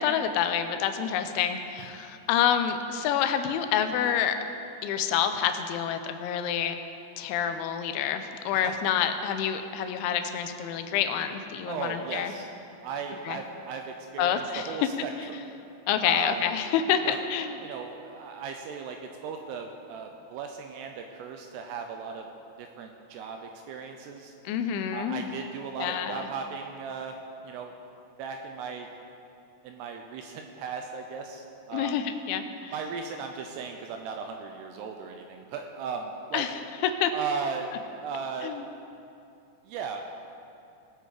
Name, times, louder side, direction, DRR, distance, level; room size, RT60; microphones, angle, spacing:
voice 1, 0.0-4.4 4.8-6.8 7.2-12.3 13.3-13.4 14.2-14.7 15.9-17.6 24.5-25.3 25.8-26.3 31.7-32.7 36.3-37.1 38.4-38.7, left 9 dB, 85° left, 8 dB, 3.1 m, -28 dB
voice 2, 8.5-8.9 11.7-12.5 12.8-15.4 16.0-16.5 17.0-17.2 17.6-22.3 22.6-24.3 24.9-27.2 27.4-27.7 28.2-28.9 29.6-32.0 32.7-36.5 37.1-37.7 38.0-38.5 39.7-40.0, right 5 dB, 80° right, 4 dB, 2.4 m, -37 dB
19.0 x 7.8 x 4.9 m, 2.7 s
omnidirectional pair, 5.3 m